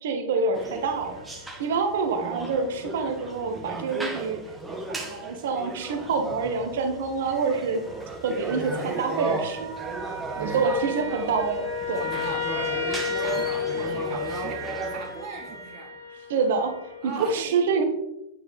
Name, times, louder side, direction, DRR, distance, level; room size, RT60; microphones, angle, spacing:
voice 1, 0.0-1.2 1.6-4.4 5.0-7.8 8.2-9.6 10.4-12.0 16.3-16.7 17.0-17.8, right 4 dB, 55° right, 6 dB, 1.5 m, -26 dB
sound 1, 0.5-15.7, right 3 dB, 10° right, 1.7 m, -36 dB
sound 2, 0.7-3.9 5.0-5.1 5.5-5.9 6.6-7.0 7.3-17.1, left 4 dB, 85° right, 2.4 m, -34 dB
voice 2, 8.5-11.4 12.0-16.0 17.0-17.8, right 5 dB, 35° right, 1 dB, 1.7 m, -40 dB
9.9 x 8.6 x 3.3 m, 0.89 s
figure-of-eight pair, 90°, 0 cm